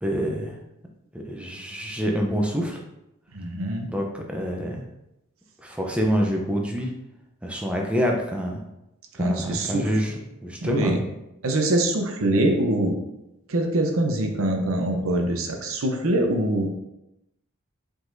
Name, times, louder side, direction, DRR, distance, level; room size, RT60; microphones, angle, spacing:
voice 1, 0.0-0.6 1.3-2.8 3.9-4.9 5.6-6.9 7.4-8.6 9.2-10.9, equal, 5° right, 0 dB, 0.5 m, -26 dB
voice 2, 3.3-3.9 9.1-9.9 10.6-11.0 11.4-13.0 13.5-16.8, right 1 dB, 70° right, 3 dB, 0.7 m, -24 dB
4.9 x 3.9 x 2.6 m, 0.88 s
head